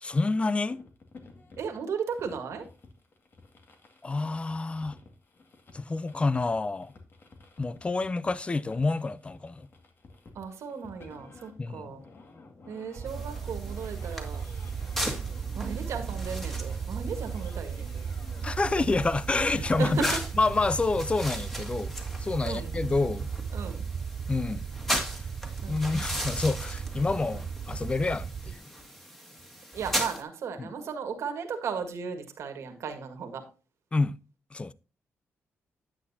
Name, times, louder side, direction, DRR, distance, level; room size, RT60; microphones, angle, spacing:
voice 1, 0.0-0.8 4.0-5.0 5.7-6.9 7.6-9.7 11.6-12.0 18.4-21.9 22.2-23.3 24.3-24.7 25.1-25.3 25.7-28.7 30.6-30.7 33.9-34.2 34.5-34.7, left 3 dB, 25° left, 0.5 m, -28 dB
sound 1, 0.7-19.7, left 3 dB, 45° left, 2.0 m, -53 dB
voice 2, 1.6-2.7 10.4-12.0 12.7-14.4 15.6-18.1 19.6-20.2 22.4-22.7 23.5-23.8 25.6-25.9 29.7-33.4, right 6 dB, 75° right, 1.8 m, -36 dB
sound 2, 13.0-28.6, right 6 dB, 40° right, 0.3 m, -36 dB
sound 3, 13.1-30.2, equal, 5° left, 2.0 m, -38 dB
10.0 x 8.4 x 2.8 m
cardioid pair, 95°, 5 cm